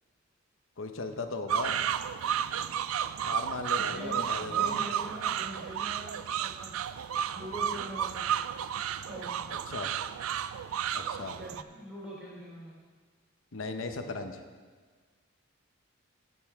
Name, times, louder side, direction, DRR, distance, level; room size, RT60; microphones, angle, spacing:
voice 1, 0.8-1.8 3.2-4.7 9.7-9.9 10.9-11.4 13.5-14.4, left 3 dB, 70° left, 6 dB, 0.8 m, -37 dB
sound 1, 1.5-11.6, right 9 dB, 80° right, 0.3 m, -32 dB
voice 2, 3.8-6.8 7.3-8.3 9.0-9.5 11.3-12.7, equal, 5° right, -6 dB, 3.2 m, -43 dB
16.5 x 6.9 x 3.6 m, 1.5 s
head